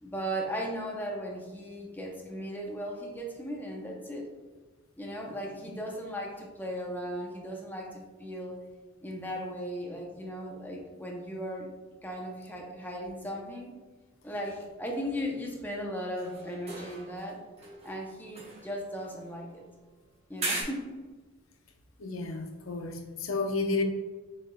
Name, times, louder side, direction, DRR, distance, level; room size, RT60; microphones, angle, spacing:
voice 1, 0.0-4.3 5.0-8.6 9.0-11.7 12.0-13.8 14.2-17.4 17.8-19.6 20.3-21.0, equal, 10° left, 0.6 m, -37 dB
sound 1, 16.2-17.3 17.6-19.7 20.4-20.6, right 2 dB, 30° right, 1.0 m, -38 dB
voice 2, 22.0-23.8, left 3 dB, 75° left, 0.6 m, -31 dB
6.8 x 3.3 x 2.2 m
head